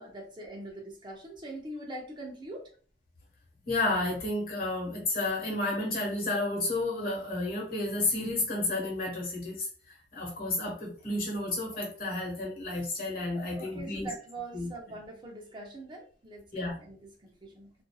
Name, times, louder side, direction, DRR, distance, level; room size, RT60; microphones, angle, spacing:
voice 1, 0.0-2.7 13.5-17.7, right 2 dB, 25° right, 0 dB, 0.5 m, -43 dB
voice 2, 3.6-14.1 14.5-14.7 16.5-16.8, left 2 dB, 55° left, -2 dB, 1.2 m, -31 dB
2.6 x 2.4 x 2.3 m, 0.41 s
head